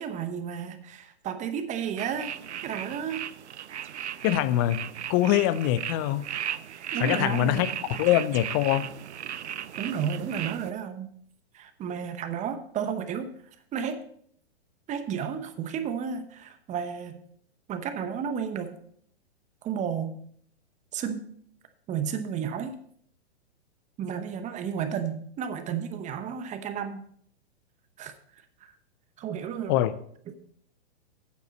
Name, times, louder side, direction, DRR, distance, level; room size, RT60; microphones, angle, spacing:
voice 1, 0.0-2.4 2.6-3.3 6.8-8.0 9.8-11.1 11.5-13.3 13.7-14.0 14.9-17.2 17.7-18.8 19.6-20.2 20.9-21.2 21.9-22.8 24.0-27.1 28.0-28.7 29.2-29.8 30.3-30.4, right 7 dB, 20° right, 0.9 m, -32 dB
sound 1, 2.0-10.7, right 10 dB, 90° right, 0.5 m, -37 dB
voice 2, 4.2-6.3 7.0-7.7 8.0-8.9 29.7-29.9, left 13 dB, 20° left, 0.3 m, -24 dB
9.0 x 8.6 x 4.1 m
hypercardioid pair, 115°, 33 cm